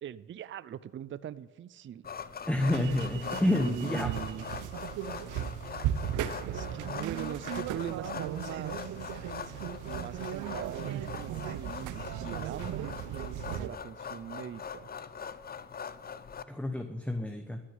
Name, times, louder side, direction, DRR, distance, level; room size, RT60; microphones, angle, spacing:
voice 1, 0.0-2.1 3.5-4.5 6.5-9.0 9.9-12.9 13.6-14.9, right 10 dB, 40° right, 16 dB, 0.5 m, -41 dB
sound 1, 2.0-16.4, left 6 dB, 30° left, 0.6 m, -42 dB
voice 2, 2.5-4.1 16.5-17.6, left 1 dB, 5° left, 6 dB, 0.9 m, -29 dB
sound 2, 2.7-13.7, right 11 dB, 85° right, 0.7 m, -37 dB
13.0 x 6.5 x 9.6 m, 1.2 s
cardioid pair, 90°, 30 cm